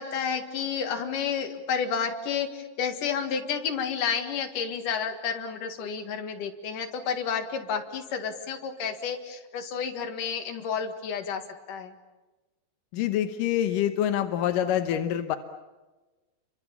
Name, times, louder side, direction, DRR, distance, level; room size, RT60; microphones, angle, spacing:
voice 1, 0.0-11.4 11.7-11.9, left 6 dB, 55° left, 5 dB, 3.0 m, -31 dB
voice 2, 12.9-15.4, left 11 dB, 70° left, 7 dB, 2.1 m, -26 dB
29.5 x 24.0 x 7.2 m, 1.2 s
omnidirectional pair, 5.1 m